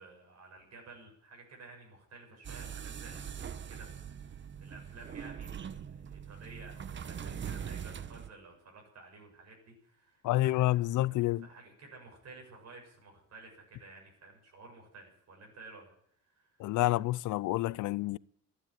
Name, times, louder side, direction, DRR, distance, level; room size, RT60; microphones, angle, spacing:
voice 1, 0.0-10.6 10.9-15.9 16.2-16.8 17.7-17.8, right 3 dB, 60° right, 7.6 m, -53 dB
sound 1, 2.4-8.3, right 8 dB, 40° right, 0.9 m, -42 dB
voice 2, 10.2-11.5 16.6-18.2, left 17 dB, 80° left, 0.5 m, -28 dB
15.5 x 10.0 x 9.0 m
cardioid pair, 90°, 30 cm